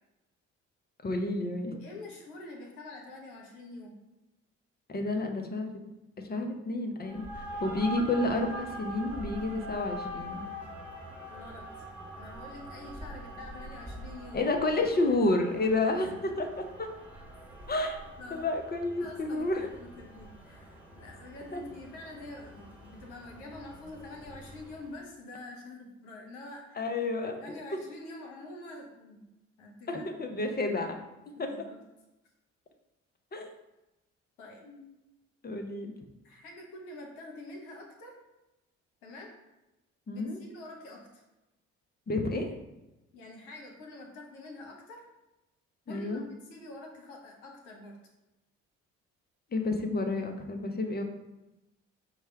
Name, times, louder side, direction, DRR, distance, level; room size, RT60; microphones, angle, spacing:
voice 1, 1.0-1.8 4.9-5.8 6.2-10.4 14.3-16.9 17.7-18.0 18.3-19.7 21.5-21.6 26.8-27.4 29.9-31.0 31.4-31.5 33.3-33.5 34.7-34.8 35.4-35.9 40.1-40.4 42.1-42.5 45.9-46.2 49.5-51.0, left 2 dB, 25° left, 4 dB, 0.7 m, -30 dB
voice 2, 1.8-3.9 11.3-11.8 12.1-14.4 17.5-17.6 18.2-18.5 19.0-26.8 27.4-29.2 29.6-30.1 31.4-31.8 34.4-34.6 36.2-38.1 39.0-39.3 40.1-41.2 43.1-45.0 45.9-48.0, left 2 dB, 75° left, 0 dB, 1.0 m, -46 dB
sound 1, 7.0-24.9, right 1 dB, 5° right, 1.3 m, -44 dB
4.7 x 2.2 x 4.5 m, 0.99 s
hypercardioid pair, 50°, 37 cm